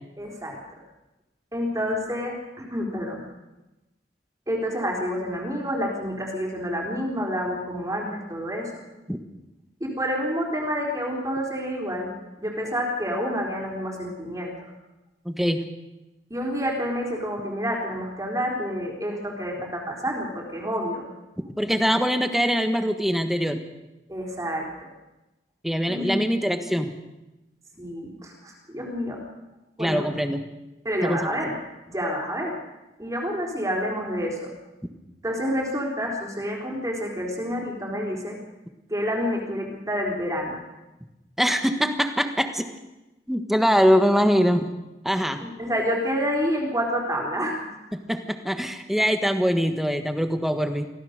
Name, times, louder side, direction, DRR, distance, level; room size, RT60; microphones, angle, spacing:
voice 1, 0.2-0.6 1.5-3.3 4.5-8.7 9.8-12.1 12.4-14.7 16.3-21.0 24.1-24.7 25.9-26.5 27.8-29.2 29.8-30.1 30.8-31.5 31.9-32.5 33.0-34.5 35.2-38.4 38.9-40.6 45.4-47.8, equal, 20° right, -1 dB, 3.8 m, -28 dB
voice 2, 15.2-15.6 21.6-23.6 25.6-26.9 29.8-30.5 31.0-31.3 41.4-42.7 43.3-44.7 45.0-45.4 47.9-50.9, equal, ahead, 7 dB, 1.4 m, -23 dB
24.5 x 16.0 x 6.6 m, 1.0 s
head